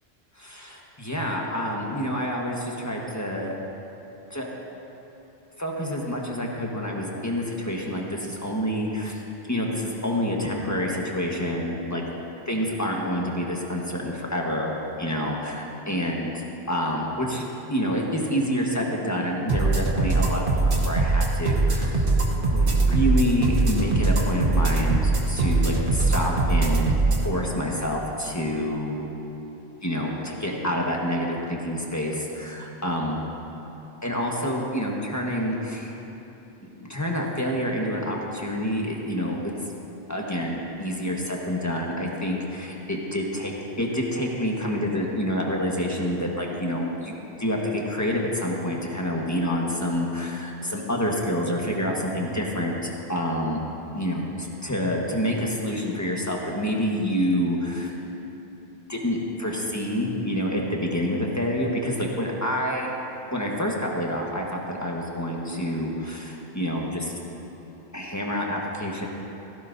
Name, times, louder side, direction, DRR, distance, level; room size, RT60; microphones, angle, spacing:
voice 1, 0.4-3.6 4.3-4.5 5.6-9.2 9.5-12.0 12.5-16.3 16.7-17.4 17.7-22.1 22.5-26.9 27.2-29.0 29.8-33.2 34.0-36.0 36.6-39.5 40.1-43.5 43.8-47.1 47.4-53.6 53.9-54.2 54.6-57.9 58.9-62.9 63.3-67.1 67.9-69.1, equal, 15° left, -2 dB, 1.4 m, -27 dB
sound 1, 19.5-27.2, right 3 dB, 55° right, 1.3 m, -22 dB
16.0 x 16.0 x 2.7 m, 3.0 s
omnidirectional pair, 1.1 m